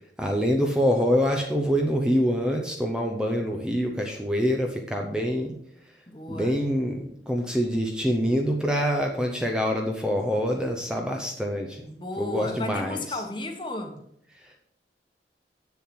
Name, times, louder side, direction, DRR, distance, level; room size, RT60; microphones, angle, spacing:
voice 1, 0.2-5.6 6.3-11.8 12.2-13.2 14.3-14.6, equal, 5° right, 1 dB, 0.8 m, -25 dB
voice 2, 6.1-6.6 11.8-14.0, left 1 dB, 25° left, 4 dB, 1.3 m, -34 dB
7.9 x 7.0 x 6.2 m, 0.71 s
head